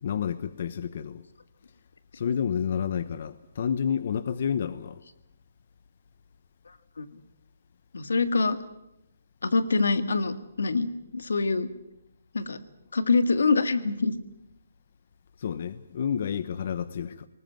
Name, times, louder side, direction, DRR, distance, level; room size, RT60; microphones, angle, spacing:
voice 1, 0.0-1.2 2.1-5.0 15.4-17.3, left 7 dB, 50° left, 0.9 m, -30 dB
voice 2, 7.9-8.6 9.4-11.7 12.3-12.6 12.9-14.1, left 4 dB, 85° left, 1.9 m, -25 dB
20.0 x 19.5 x 9.3 m
hypercardioid pair, 165°, 0 cm